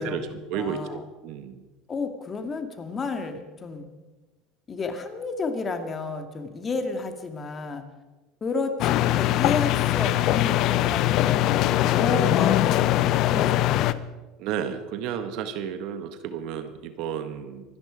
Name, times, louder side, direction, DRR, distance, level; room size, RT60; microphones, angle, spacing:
voice 1, 0.0-1.6 14.4-17.6, right 8 dB, 65° right, 10 dB, 1.5 m, -32 dB
voice 2, 0.5-1.0 1.9-3.9 4.7-7.8 8.4-11.5 11.9-12.9 13.3-14.1, left 4 dB, 30° left, 6 dB, 2.1 m, -31 dB
sound 1, 8.8-13.9, left 14 dB, 55° left, 0.7 m, -22 dB
24.0 x 10.5 x 5.2 m, 1.2 s
supercardioid pair, 105°, 0 cm